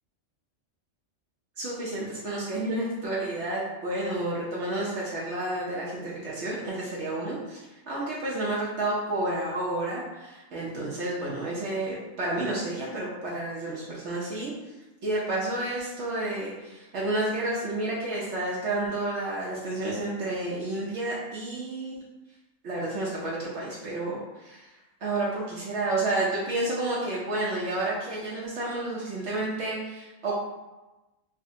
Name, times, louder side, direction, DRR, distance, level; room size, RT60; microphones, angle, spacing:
voice 1, 1.6-7.6 7.9-14.5 15.0-22.0 22.6-24.7 25.0-30.3, right 2 dB, 65° right, -6 dB, 1.0 m, -30 dB
4.7 x 2.1 x 2.7 m, 1.1 s
omnidirectional pair, 1.4 m